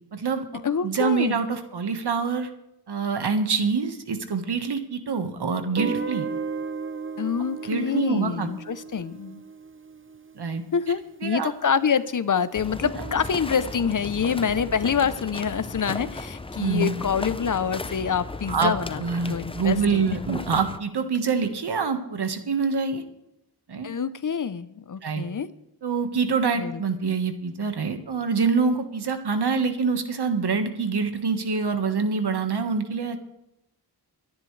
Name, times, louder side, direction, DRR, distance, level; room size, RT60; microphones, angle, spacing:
voice 1, 0.1-2.5 2.9-6.3 7.7-8.5 10.3-10.6 11.2-11.5 12.8-13.2 16.6-16.9 18.5-23.0 23.7-23.9 25.0-25.2 25.8-33.2, right 5 dB, 75° right, 7 dB, 1.5 m, -26 dB
voice 2, 0.6-1.4 7.2-9.4 10.7-19.0 19.3-20.2 23.8-25.5 26.5-26.8, left 7 dB, 50° left, 14 dB, 0.7 m, -26 dB
Guitar, 5.8-10.6, right 5 dB, 30° right, 0.7 m, -34 dB
sound 1, 12.5-20.8, left 2 dB, 15° left, 0.6 m, -36 dB
24.0 x 10.5 x 3.3 m, 0.84 s
wide cardioid pair, 95°, 40 cm